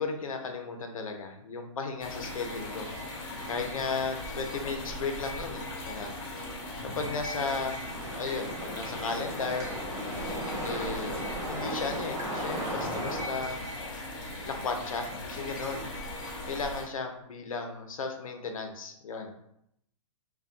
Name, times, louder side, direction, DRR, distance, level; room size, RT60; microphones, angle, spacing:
voice 1, 0.0-2.9 3.5-6.1 6.8-7.7 8.1-9.7 10.6-13.6 14.4-15.9 16.5-19.3, left 4 dB, 85° left, 4 dB, 0.5 m, -35 dB
sound 1, 2.0-16.8, left 1 dB, 40° left, 0.9 m, -39 dB
sound 2, 7.9-13.2, right 1 dB, 20° right, 0.6 m, -36 dB
2.6 x 2.1 x 2.4 m, 0.75 s
hypercardioid pair, 135°, 17 cm